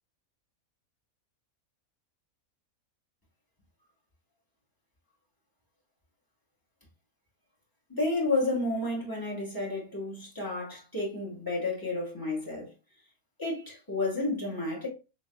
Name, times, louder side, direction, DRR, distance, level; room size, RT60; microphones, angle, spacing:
voice 1, 7.9-12.7 13.4-14.9, left 2 dB, 15° left, 1.8 m, -31 dB
6.0 x 2.9 x 2.3 m
omnidirectional pair, 1.5 m